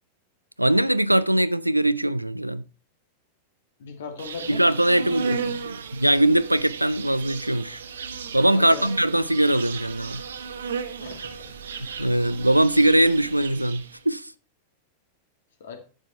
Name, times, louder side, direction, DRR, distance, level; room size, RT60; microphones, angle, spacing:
voice 1, 0.6-2.7 4.5-7.8 8.3-10.2 12.0-14.3, right 1 dB, 85° right, 0.4 m, -21 dB
voice 2, 3.8-4.6 5.0-5.2 8.6-8.9 11.0-11.6 15.6-15.8, left 5 dB, 60° left, 2.1 m, -38 dB
Insect, 4.2-14.0, right 5 dB, 65° right, 0.9 m, -35 dB
10.5 x 7.6 x 3.3 m
figure-of-eight pair, 90°, 0 cm